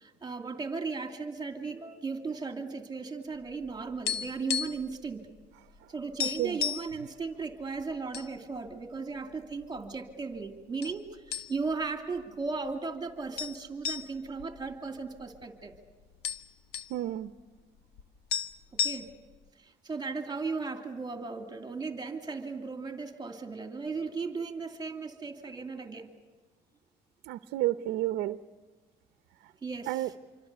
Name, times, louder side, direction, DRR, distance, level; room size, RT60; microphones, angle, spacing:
voice 1, 0.0-5.3 5.9-15.7 18.7-19.1 19.6-26.1 29.6-30.1, right 4 dB, 25° right, 5 dB, 2.7 m, -36 dB
sound 1, 3.5-5.0 5.2-5.4 5.8-5.9 6.2-6.9 7.6-8.3 8.7-8.8 9.5-10.1 10.8-11.0 11.3-11.8 12.2-12.3 13.4-15.4 15.7-15.8 16.0-17.0 18.0-18.1 18.3-19.4, left 8 dB, 75° left, 1.1 m, -33 dB
voice 2, 6.2-6.6 16.9-17.3 27.2-28.4 29.9-30.1, right 15 dB, 85° right, 11 dB, 0.8 m, -31 dB
26.5 x 25.0 x 6.8 m, 1.4 s
cardioid pair, 110°, 17 cm